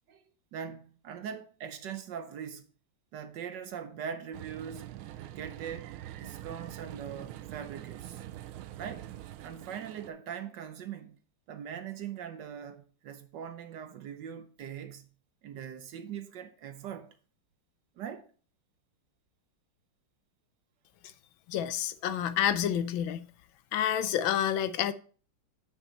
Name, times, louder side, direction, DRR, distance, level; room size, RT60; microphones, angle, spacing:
voice 1, 0.5-2.7 3.1-4.9 5.2-8.2 8.8-9.1 9.4-11.2 11.5-15.1 15.4-17.1 18.0-18.3, right 8 dB, 65° right, 1.2 m, -41 dB
sound 1, 4.3-10.1, right 13 dB, 90° right, 1.5 m, -44 dB
voice 2, 21.5-23.2 23.7-24.9, left 10 dB, 75° left, 1.4 m, -28 dB
9.1 x 5.9 x 4.3 m
omnidirectional pair, 2.3 m